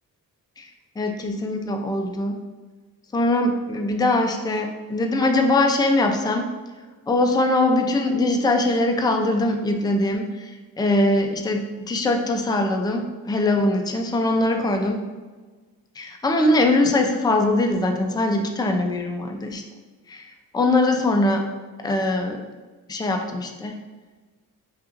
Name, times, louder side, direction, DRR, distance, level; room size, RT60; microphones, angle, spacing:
voice 1, 1.0-2.4 3.1-6.5 7.1-10.5 10.8-15.0 16.0-19.6 20.1-20.3 20.5-21.4 21.8-22.4 22.9-23.8, left 2 dB, 10° left, 4 dB, 0.4 m, -22 dB
5.5 x 2.5 x 2.5 m, 1.3 s
cardioid pair, 70°, 36 cm